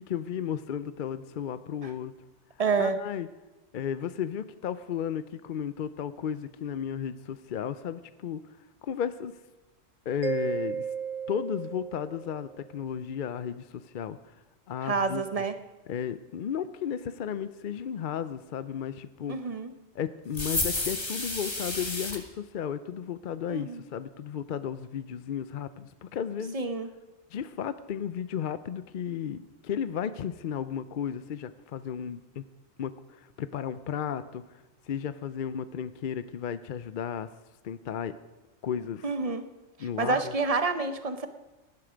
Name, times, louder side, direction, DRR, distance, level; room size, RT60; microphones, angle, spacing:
voice 1, 0.0-2.1 2.8-3.3 3.7-8.4 8.8-9.3 10.1-10.9 11.3-14.2 14.7-15.2 15.9-19.4 19.9-26.6 27.3-32.4 32.8-34.4 34.9-37.3 37.6-38.1 38.6-39.1 39.8-40.3, left 8 dB, 55° left, 13 dB, 0.5 m, -34 dB
voice 2, 2.6-3.0 14.8-15.5 19.3-19.7 23.5-23.8 26.5-26.9 39.0-39.5 40.0-41.3, right 4 dB, 35° right, 9 dB, 0.8 m, -28 dB
Mallet percussion, 10.2-12.8, right 6 dB, 85° right, 1.3 m, -34 dB
sound 1, 20.3-22.2, left 2 dB, 20° left, 1.4 m, -31 dB
17.5 x 11.0 x 5.1 m, 1.1 s
omnidirectional pair, 1.4 m